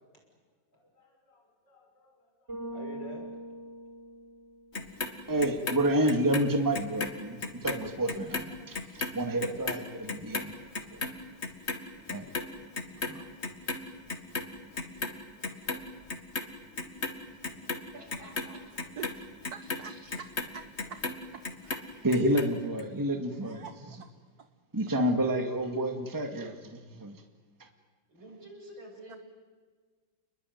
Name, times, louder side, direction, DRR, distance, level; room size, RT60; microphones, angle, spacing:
voice 1, 0.7-3.2, left 1 dB, 60° left, 2 dB, 7.0 m, -51 dB
Bass guitar, 2.5-4.8, right 1 dB, 35° right, 6.3 m, -42 dB
Clock, 4.7-7.1 7.4-13.8 14.1-15.1 15.4-16.4 16.8-21.2 21.4-22.4 22.8-22.9, left 3 dB, 35° left, 2.2 m, -35 dB
voice 2, 5.3-10.6 10.9-11.0 12.1-12.3 13.1-13.2 22.0-23.7 24.7-27.2, right 1 dB, 10° right, 5 dB, 2.0 m, -29 dB
voice 3, 17.9-18.9 19.6-20.0 28.1-29.2, right 1 dB, 80° right, 0 dB, 8.4 m, -49 dB
voice 4, 19.0-21.0 21.3-22.1 23.4-24.1 24.4-24.5 29.1-29.2, right 7 dB, 55° right, 10 dB, 1.4 m, -47 dB
29.5 x 21.0 x 9.5 m, 1.5 s
omnidirectional pair, 2.1 m